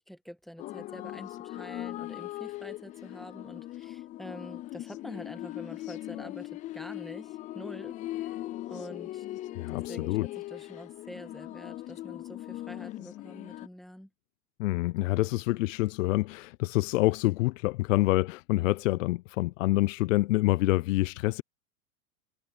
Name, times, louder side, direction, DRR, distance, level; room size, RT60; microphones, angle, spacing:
voice 1, 0.0-8.4 8.7-9.2 9.7-14.1, equal, ahead, 1.5 m, -46 dB
sound 1, 0.6-13.7, left 15 dB, 20° left, 0.3 m, -40 dB
voice 2, 9.6-10.3 14.6-21.4, left 19 dB, 65° left, 0.6 m, -27 dB
hypercardioid pair, 120°, 41 cm